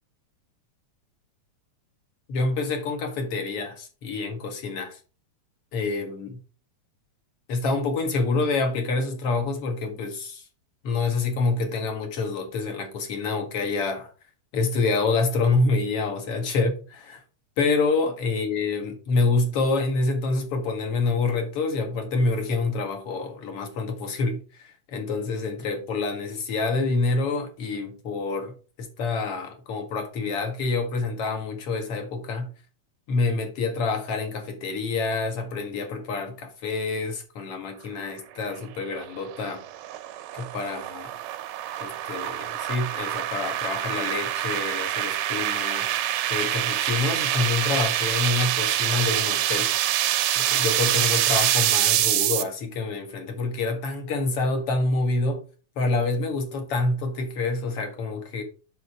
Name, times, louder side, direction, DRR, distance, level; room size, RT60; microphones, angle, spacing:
voice 1, 2.3-5.0 5.7-6.4 7.5-10.4 10.8-14.1 14.5-17.2 17.6-32.5 33.1-39.6 40.3-41.1 41.8-45.9 46.3-49.7 50.4-55.4 55.8-58.4, left 3 dB, 50° left, 2.5 m, -27 dB
sound 1, 38.5-52.4, right 13 dB, 85° right, 2.4 m, -25 dB
7.9 x 6.4 x 4.9 m
omnidirectional pair, 3.7 m